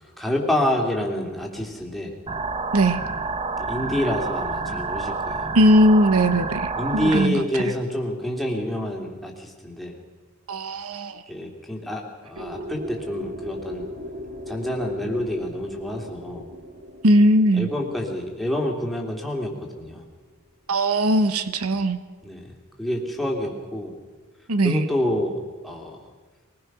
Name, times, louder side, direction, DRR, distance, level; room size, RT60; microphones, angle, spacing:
voice 1, 0.2-2.1 3.6-5.5 6.7-10.0 11.3-13.8 14.5-16.4 17.5-20.0 22.2-22.5 22.8-23.9 24.6-25.4 25.6-26.0, left 1 dB, ahead, -1 dB, 2.9 m, -27 dB
sound 1, 2.3-7.3, right 3 dB, 25° right, 0.8 m, -28 dB
voice 2, 5.5-7.4 10.5-11.2 17.0-17.7 20.7-22.0 24.5-24.9, right 1 dB, 75° right, 11 dB, 1.0 m, -19 dB
sound 2, 12.4-20.2, equal, 45° right, 2.1 m, -39 dB
22.0 x 20.0 x 6.1 m, 1.3 s
head